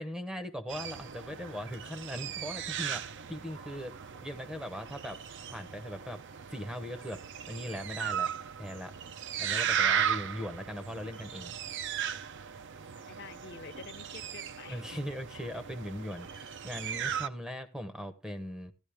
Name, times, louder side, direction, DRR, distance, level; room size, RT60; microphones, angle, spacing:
voice 1, 0.0-3.0 3.3-3.9 4.2-5.2 5.5-6.2 6.5-7.2 7.5-8.3 8.6-8.9 9.4-11.5 14.7-18.7, equal, 5° right, 0.7 m, -39 dB
sound 1, 0.7-17.3, right 8 dB, 55° right, 0.6 m, -36 dB
voice 2, 13.1-15.0 15.3-15.4, left 4 dB, 50° left, 0.9 m, -48 dB
14.0 x 10.5 x 3.4 m
head